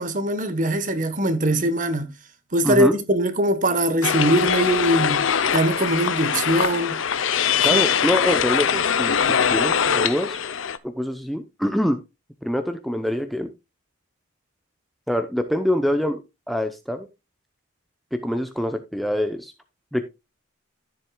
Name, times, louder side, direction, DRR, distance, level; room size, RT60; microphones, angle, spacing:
voice 1, 0.0-2.1 2.5-5.3 5.5-7.0 7.7-7.8, right 1 dB, 35° right, 1.2 m, -22 dB
sound 1, 4.0-10.8, left 7 dB, 65° left, 0.7 m, -22 dB
voice 2, 7.6-10.4 10.8-12.0 12.4-13.5 15.1-17.1 18.1-19.5 19.9-20.0, equal, ahead, 0.7 m, -25 dB
13.5 x 7.6 x 2.3 m
head